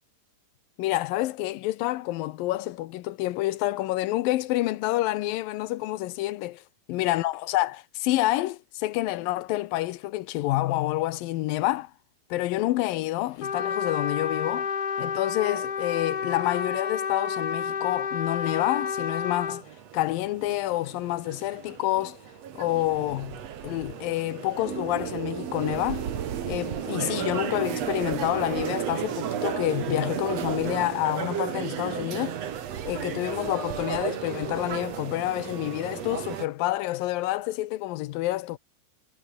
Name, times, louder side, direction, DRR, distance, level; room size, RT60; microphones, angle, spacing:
voice 1, 0.8-6.6 6.9-11.9 12.3-14.7 15.0-19.6 19.9-22.2 22.6-26.1 26.5-32.4 32.9-38.6, left 16 dB, 75° left, 2.5 m, -28 dB
Trumpet, 13.4-19.6, left 6 dB, 40° left, 1.4 m, -30 dB
sound 1, 18.4-36.5, right 9 dB, 50° right, 2.5 m, -35 dB
sound 2, 24.6-30.9, right 9 dB, 75° right, 4.4 m, -35 dB
omnidirectional pair, 4.4 m